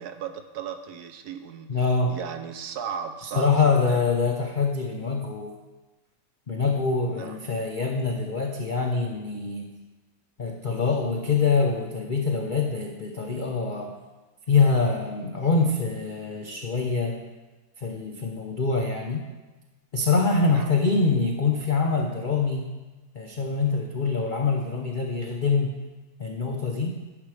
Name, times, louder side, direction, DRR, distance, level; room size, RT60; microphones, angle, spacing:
voice 1, 0.0-1.7 2.1-4.0 7.1-7.4 20.4-20.7 23.7-23.8, right 7 dB, 70° right, 8 dB, 1.1 m, -36 dB
voice 2, 1.7-2.2 3.3-5.5 6.5-9.7 10.4-13.9 14.5-17.2 17.8-19.3 19.9-22.7 23.1-25.8 26.2-27.0, left 4 dB, 60° left, 1 dB, 0.5 m, -25 dB
11.0 x 5.9 x 4.9 m, 1.2 s
omnidirectional pair, 1.9 m